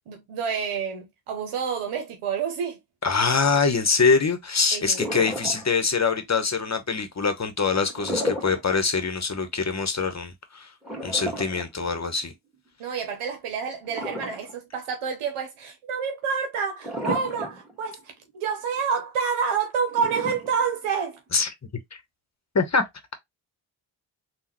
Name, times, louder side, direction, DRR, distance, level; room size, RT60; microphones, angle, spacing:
voice 1, 0.1-2.8 4.7-5.0 12.8-18.0 18.3-21.2, right 6 dB, 85° right, 0.9 m, -28 dB
voice 2, 3.0-10.7 11.0-12.3 21.3-21.5 22.5-22.8, left 4 dB, 35° left, 1.1 m, -24 dB
sound 1, 4.9-5.9 7.8-8.7 9.1-9.2 10.8-12.3 13.8-14.8 15.2-15.3 16.8-17.7 18.1-18.2 19.9-20.9, equal, ahead, 1.8 m, -32 dB
3.7 x 2.4 x 3.0 m
supercardioid pair, 40°, 50 cm